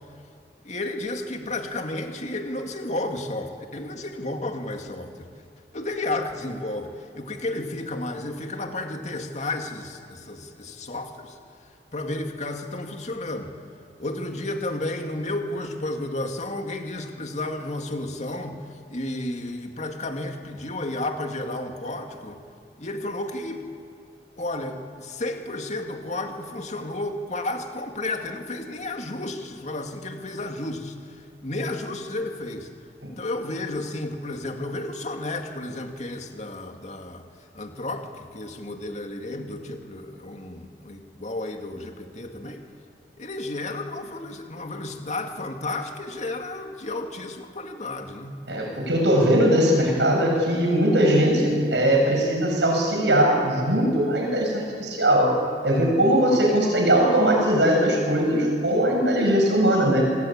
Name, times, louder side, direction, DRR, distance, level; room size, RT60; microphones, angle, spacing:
voice 1, 0.6-5.3 5.7-11.4 11.9-13.5 14.0-18.6 18.9-22.4 22.8-23.7 24.4-32.7 33.1-37.3 37.5-42.6 43.2-48.8, left 2 dB, 40° left, 4 dB, 2.3 m, -32 dB
voice 2, 48.5-55.3 55.6-60.1, right 1 dB, 80° right, 1 dB, 7.4 m, -20 dB
27.0 x 20.0 x 8.8 m, 2.4 s
head